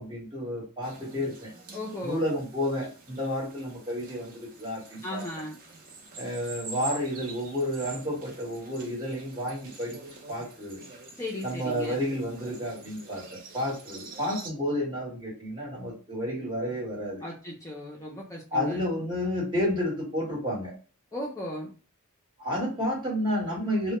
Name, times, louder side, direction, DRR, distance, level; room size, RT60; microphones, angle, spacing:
voice 1, 0.0-1.5 2.0-5.2 6.1-10.0 10.3-10.8 11.4-17.2 18.5-20.7 22.4-24.0, left 1 dB, 20° right, -4 dB, 1.1 m, -31 dB
sound 1, 0.8-14.5, right 3 dB, 40° right, 0.5 m, -46 dB
voice 2, 1.7-2.2 5.0-5.5 11.2-12.0 17.2-18.8 21.1-21.7, left 1 dB, 15° left, -4 dB, 0.4 m, -36 dB
2.1 x 2.1 x 2.9 m, 0.37 s
head